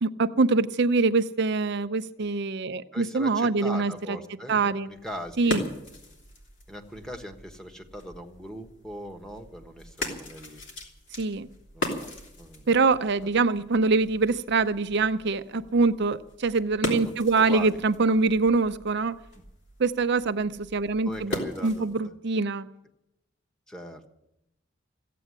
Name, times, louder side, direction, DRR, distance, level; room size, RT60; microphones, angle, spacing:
voice 1, 0.0-4.2 4.5-4.9 5.4-5.6 11.2-11.5 12.7-19.2 19.8-21.4 21.6-22.7, right 3 dB, 60° right, 11 dB, 0.6 m, -24 dB
voice 2, 2.9-5.6 6.7-10.6 11.7-12.1 12.4-12.7 17.3-17.8 19.3-19.4 21.0-22.1 23.7-24.0, equal, 5° left, 3 dB, 1.3 m, -40 dB
sound 1, 4.9-22.1, left 1 dB, 65° left, 3.1 m, -39 dB
15.5 x 8.5 x 9.7 m, 0.87 s
head